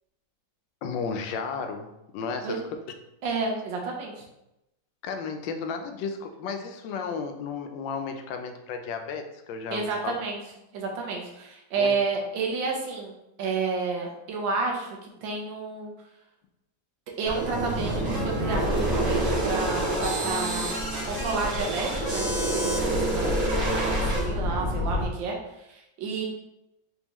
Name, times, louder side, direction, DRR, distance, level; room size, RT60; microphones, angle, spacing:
voice 1, 0.8-2.6 5.0-10.2 11.8-12.0 23.2-23.4, left 5 dB, 80° left, 6 dB, 1.2 m, -33 dB
voice 2, 3.2-4.2 9.7-10.4 10.7-13.1 13.4-15.9 17.1-20.8 21.1-26.2, right 4 dB, 80° right, 0 dB, 1.6 m, -31 dB
sound 1, 17.2-25.1, right 1 dB, 45° right, 1.4 m, -27 dB
4.1 x 3.6 x 3.0 m, 0.89 s
omnidirectional pair, 2.0 m